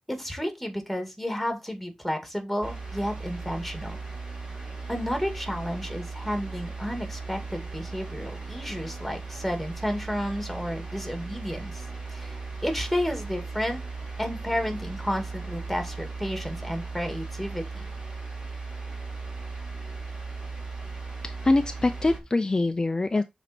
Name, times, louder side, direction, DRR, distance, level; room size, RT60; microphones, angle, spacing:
voice 1, 0.1-4.0 4.9-11.8 12.1-13.8 14.2-17.8, equal, ahead, 2.2 m, -31 dB
sound 1, 2.6-22.2, right 3 dB, 40° right, 3.3 m, -37 dB
voice 2, 21.2-23.2, left 2 dB, 35° left, 0.5 m, -24 dB
6.8 x 4.1 x 4.3 m
wide cardioid pair, 80°, 2 cm